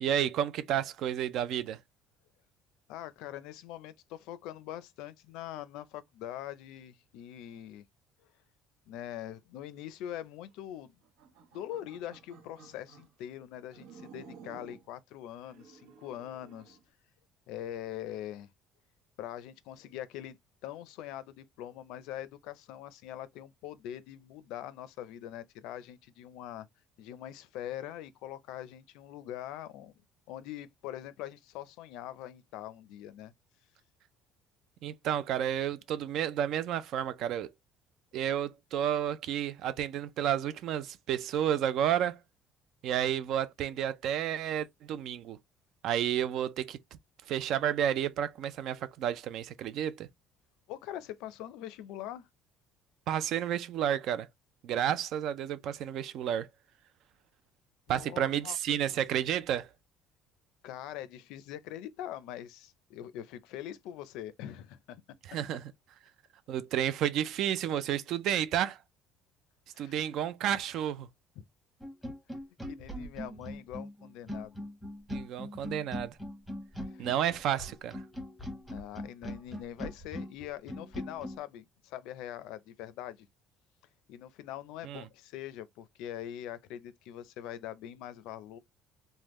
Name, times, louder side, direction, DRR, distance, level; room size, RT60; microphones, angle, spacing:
voice 1, 0.0-1.8 34.8-37.5 38.1-42.2 42.8-45.4 45.8-46.8 47.3-50.1 53.1-54.3 54.6-56.5 57.9-59.7 65.3-65.7 66.5-68.8 69.8-71.1 75.1-76.2 77.0-78.0 84.8-85.0, right 10 dB, 55° right, 0.3 m, -31 dB
voice 2, 2.9-7.8 8.9-10.9 11.5-16.8 17.5-18.5 19.2-20.4 20.6-26.7 27.0-29.9 30.3-33.3 50.7-52.3 57.9-58.8 60.6-65.0 69.7-70.1 71.4-71.5 72.7-74.6 76.8-77.1 78.7-83.3 84.1-88.6, left 12 dB, 75° left, 0.5 m, -43 dB
sound 1, 11.0-13.1 13.7-14.9 15.4-16.8, right 6 dB, 80° right, 1.0 m, -54 dB
sound 2, 71.8-81.4, equal, ahead, 0.9 m, -41 dB
3.5 x 2.1 x 3.0 m
cardioid pair, 165°, 0 cm